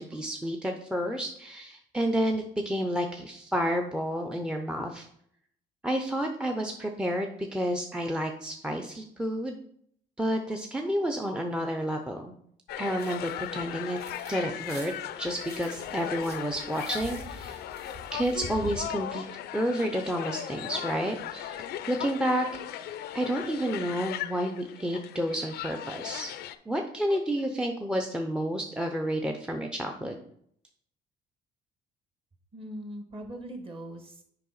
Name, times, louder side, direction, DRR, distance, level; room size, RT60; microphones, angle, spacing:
voice 1, 0.0-5.1 5.8-9.6 10.2-12.3 12.8-14.0 14.3-14.9 15.2-17.6 18.1-26.3 26.7-30.2, equal, 5° right, 3 dB, 0.6 m, -30 dB
sound 1, 12.7-26.5, left 11 dB, 70° left, 0.5 m, -38 dB
sound 2, 12.9-14.3 14.6-18.8, equal, 75° right, 2.5 m, -45 dB
voice 2, 32.5-34.2, right 1 dB, 35° right, 5 dB, 1.5 m, -40 dB
6.6 x 5.0 x 4.0 m, 0.68 s
cardioid pair, 110°, 17 cm